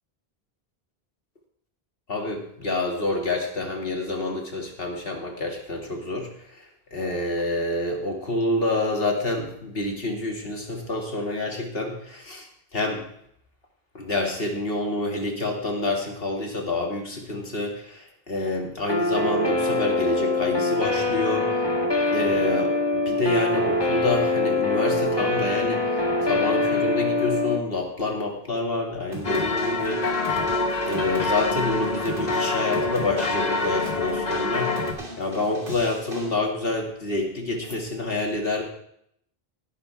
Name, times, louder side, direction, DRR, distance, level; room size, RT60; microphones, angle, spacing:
voice 1, 2.1-6.3 6.9-12.5 12.7-13.1 13.9-21.5 22.1-30.0 30.9-34.8 35.2-38.6, left 2 dB, 65° left, 1 dB, 2.5 m, -27 dB
Guitar, 18.9-27.6, left 2 dB, 25° left, 1.5 m, -24 dB
sound 1, 29.1-36.3, right 1 dB, 60° right, 3.0 m, -39 dB
sound 2, 29.2-34.9, left 3 dB, 45° left, 1.1 m, -26 dB
16.5 x 10.5 x 3.5 m, 0.71 s
omnidirectional pair, 1.0 m